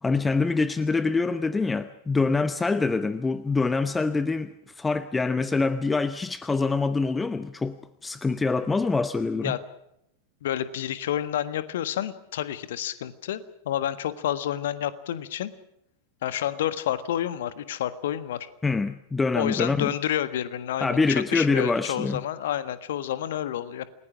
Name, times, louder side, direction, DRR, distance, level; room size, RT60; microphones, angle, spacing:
voice 1, 0.0-9.5 18.6-19.9 20.8-22.2, left 3 dB, 10° left, 14 dB, 0.8 m, -25 dB
voice 2, 10.4-15.5 16.2-18.5 19.3-23.9, left 11 dB, 60° left, 13 dB, 1.5 m, -29 dB
29.0 x 20.0 x 6.2 m, 0.77 s
figure-of-eight pair, 90°, 0 cm